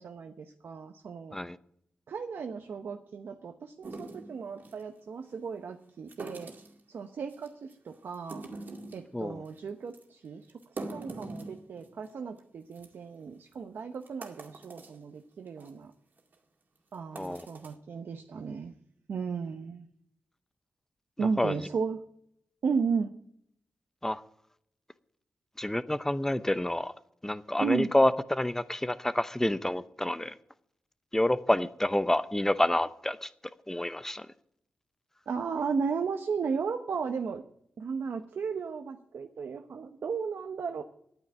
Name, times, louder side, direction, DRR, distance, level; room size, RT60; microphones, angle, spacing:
voice 1, 0.0-1.4 2.1-6.5 6.9-8.4 8.9-10.5 10.9-15.9 16.9-18.7 19.1-19.8 21.2-22.0 22.6-23.1 27.6-27.9 35.3-37.4 37.8-40.8, right 5 dB, 75° right, 0.9 m, -34 dB
sound 1, 3.8-4.8 6.1-6.8 7.3-7.7 8.1-9.1 9.5-9.6 9.9-10.0 10.5-12.1 12.4-12.5 12.7-12.9 13.5-13.6 14.0-15.0 15.5-15.7 16.2-16.3 16.9-17.7, right 3 dB, 55° right, 2.2 m, -43 dB
voice 2, 25.6-26.9 27.2-30.3 31.1-33.3 33.7-34.3, left 1 dB, 10° left, 0.7 m, -28 dB
10.5 x 9.3 x 9.9 m
cardioid pair, 75°, 4 cm